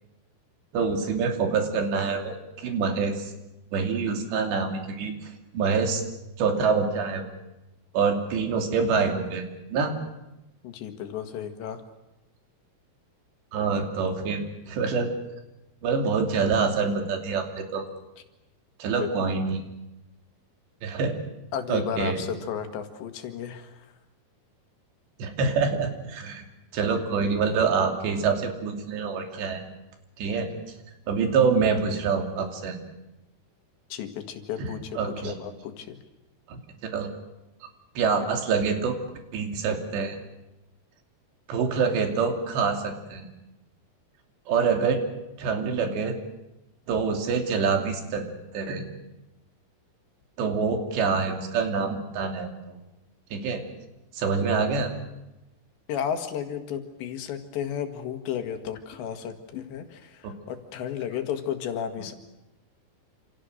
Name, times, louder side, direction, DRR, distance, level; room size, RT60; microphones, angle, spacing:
voice 1, 0.7-3.3 3.7-5.1 5.5-6.0 6.4-7.3 7.9-9.4 9.7-10.0 13.5-15.1 15.8-17.9 18.8-19.6 20.8-21.1 21.7-22.2 25.2-26.4 26.7-29.6 30.2-30.5 31.1-32.8 34.6-34.7 35.0-35.3 36.5-37.1 38.0-39.0 39.3-40.2 41.5-43.3 44.5-45.0 45.4-46.2 46.9-48.2 48.5-48.9 50.4-52.8 53.3-53.6 54.1-54.9 60.2-60.3, right 5 dB, 80° right, 4 dB, 5.0 m, -26 dB
voice 2, 10.6-11.8 19.0-19.1 21.5-23.9 33.9-34.9 35.2-36.0 55.9-62.1, left 8 dB, 85° left, 6 dB, 4.2 m, -33 dB
28.5 x 27.5 x 6.6 m, 0.95 s
omnidirectional pair, 4.9 m